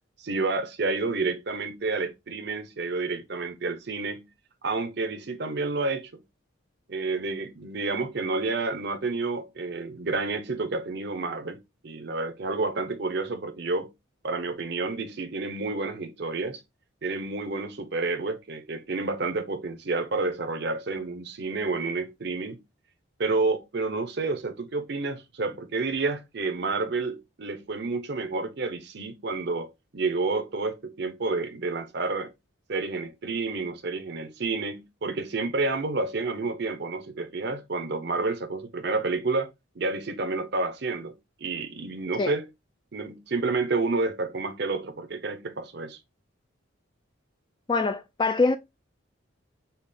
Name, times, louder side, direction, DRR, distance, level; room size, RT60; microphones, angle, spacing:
voice 1, 0.2-4.2 4.6-6.1 6.9-11.6 11.8-13.9 14.2-16.6 17.0-22.6 23.2-32.3 32.7-39.5 39.8-41.1 41.4-42.5 42.9-46.0, right 3 dB, 55° right, 0.7 m, -29 dB
voice 2, 47.7-48.6, left 3 dB, 25° left, 0.4 m, -24 dB
5.5 x 2.4 x 3.4 m
head